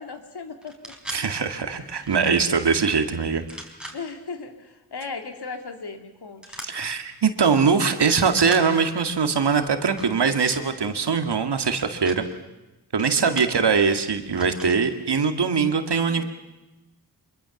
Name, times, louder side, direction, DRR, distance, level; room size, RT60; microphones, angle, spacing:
voice 1, 0.0-0.9 1.6-2.1 3.9-6.7 13.2-13.6 16.1-16.2, left 4 dB, 70° left, 7 dB, 2.7 m, -37 dB
sound 1, 0.6-1.2 2.0-2.6 3.4-4.0 6.4-6.7 7.4-7.6 8.0-8.6 9.9-10.6 11.6-12.2 13.0-13.6 14.3-14.8, right 1 dB, ahead, 4.4 m, -40 dB
voice 2, 1.1-3.4 6.6-12.3 12.9-16.2, right 5 dB, 75° right, 8 dB, 2.1 m, -22 dB
25.0 x 23.0 x 7.2 m, 1.0 s
wide cardioid pair, 85°, 40 cm